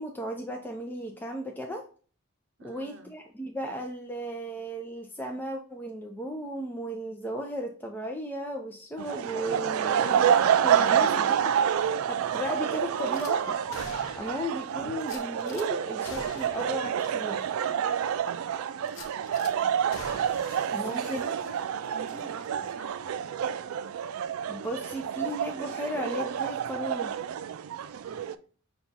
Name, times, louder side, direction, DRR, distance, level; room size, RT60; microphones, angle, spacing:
voice 1, 0.0-1.8 2.6-13.5 14.2-17.5 20.7-21.2 24.5-27.1, equal, 10° left, 2 dB, 0.4 m, -35 dB
voice 2, 2.6-3.1 10.9-11.1 19.2-19.8 20.6-23.0 27.8-28.3, right 3 dB, 60° right, 5 dB, 0.8 m, -44 dB
sound 1, 9.0-28.3, right 8 dB, 80° right, 0.3 m, -28 dB
Gunshot gunfire / Glass, 13.1-13.3 13.7-14.5 15.0-15.7 16.0-16.7 17.0-17.1 17.6-17.7 18.9-19.5 19.9-21.7 22.0-22.2, left 3 dB, 75° left, 0.7 m, -45 dB
5.6 x 2.3 x 3.9 m, 0.40 s
head